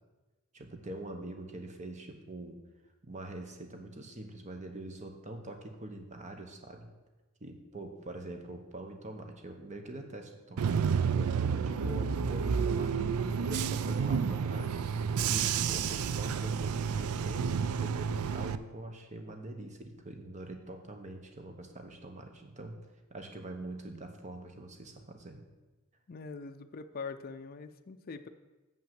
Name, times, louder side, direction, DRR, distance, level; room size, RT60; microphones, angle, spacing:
voice 1, 0.5-2.6 3.0-6.9 7.4-10.8 11.1-13.0 13.4-14.8 15.2-22.8 23.1-25.4, right 2 dB, 35° right, 4 dB, 1.1 m, -44 dB
Bus / Engine, 10.6-18.6, right 6 dB, 85° right, 0.4 m, -30 dB
voice 2, 26.1-28.3, left 4 dB, 45° left, 8 dB, 0.5 m, -43 dB
7.2 x 5.7 x 7.6 m, 1.1 s
head